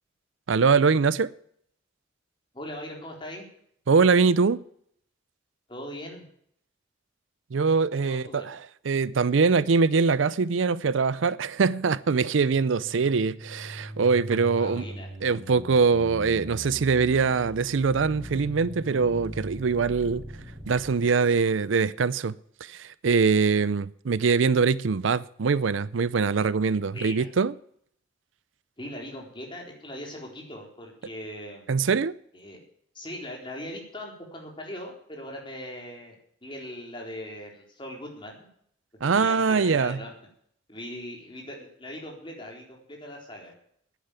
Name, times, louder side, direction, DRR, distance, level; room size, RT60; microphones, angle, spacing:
voice 1, 0.5-1.3 3.9-4.6 7.5-8.6 8.9-14.9 15.2-20.2 20.7-27.5 31.7-32.1 39.0-40.0, right 5 dB, 75° right, 0.5 m, -23 dB
voice 2, 2.5-3.4 5.7-6.3 8.0-8.5 14.5-15.1 26.9-27.3 28.8-31.7 32.3-32.6 32.9-36.2 36.4-38.5 39.0-40.1 40.7-43.5, left 1 dB, 25° left, 3.9 m, -40 dB
sound 1, 12.3-21.1, equal, 40° right, 6.5 m, -40 dB
10.0 x 9.3 x 9.0 m
head